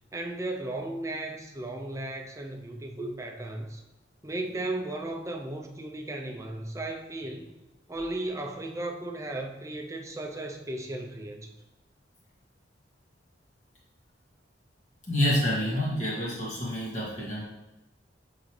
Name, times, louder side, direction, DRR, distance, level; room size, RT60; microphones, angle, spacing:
voice 1, 0.1-3.8 4.2-7.6 7.9-11.5, right 2 dB, 15° right, 3 dB, 0.6 m, -35 dB
voice 2, 15.1-17.4, left 1 dB, 40° left, -5 dB, 2.0 m, -28 dB
7.8 x 4.0 x 3.2 m, 1.0 s
head